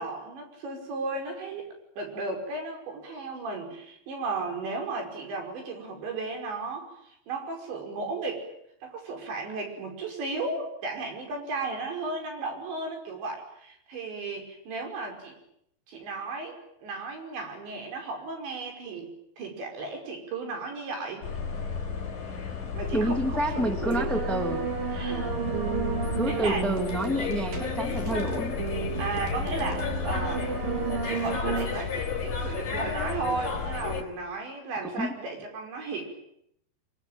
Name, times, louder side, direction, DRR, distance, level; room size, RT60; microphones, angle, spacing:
voice 1, 0.0-1.7 2.0-8.5 8.8-15.4 15.9-19.1 19.4-21.2 22.7-24.1 24.9-25.5 26.3-26.6 29.0-30.5 31.0-36.0, right 3 dB, 70° right, 3 dB, 7.6 m, -35 dB
sound 1, 21.2-34.0, left 5 dB, 50° left, 5.2 m, -33 dB
voice 2, 22.9-24.6 26.1-28.6 35.0-35.1, right 1 dB, ahead, 5 dB, 1.7 m, -28 dB
sound 2, 23.9-31.7, right 5 dB, 50° right, 5.4 m, -32 dB
25.0 x 24.5 x 9.1 m, 0.76 s
omnidirectional pair, 5.4 m